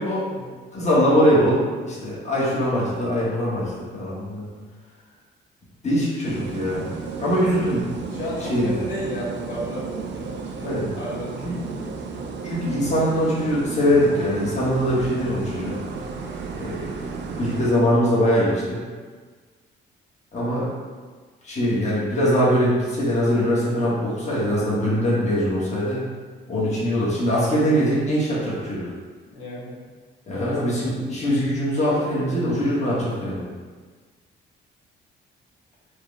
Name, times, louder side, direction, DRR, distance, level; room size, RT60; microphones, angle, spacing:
voice 1, 0.7-4.5 5.8-6.8 7.2-7.9 8.5-8.7 10.6-10.9 11.4-11.5 12.4-15.8 16.5-18.8 20.3-20.7 21.4-26.0 26.5-28.9 30.3-33.4, equal, 35° left, -8 dB, 1.4 m, -22 dB
sound 1, 6.2-17.7, right 5 dB, 65° right, 0.5 m, -34 dB
voice 2, 8.1-12.3 29.3-29.8 30.3-30.9, equal, 80° left, -8 dB, 1.3 m, -34 dB
4.8 x 2.3 x 3.3 m, 1.5 s
cardioid pair, 90°, 20 cm